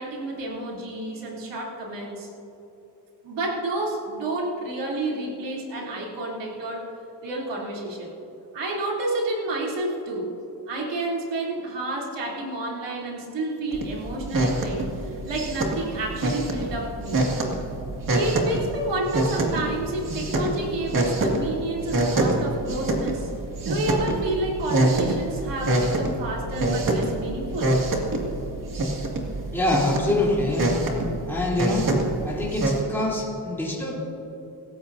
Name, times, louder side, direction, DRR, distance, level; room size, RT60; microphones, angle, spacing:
voice 1, 0.0-2.3 3.2-6.9 7.2-8.1 8.5-10.3 10.7-17.2 18.1-23.3 23.6-27.7, right 2 dB, 90° right, -3 dB, 3.3 m, -30 dB
sound 1, 13.7-32.8, right 2 dB, 50° right, 2.3 m, -26 dB
voice 2, 29.5-30.7 31.3-31.9 32.2-33.9, left 1 dB, 5° left, -6 dB, 3.5 m, -25 dB
26.0 x 14.0 x 2.7 m, 3.0 s
wide cardioid pair, 130°, 42 cm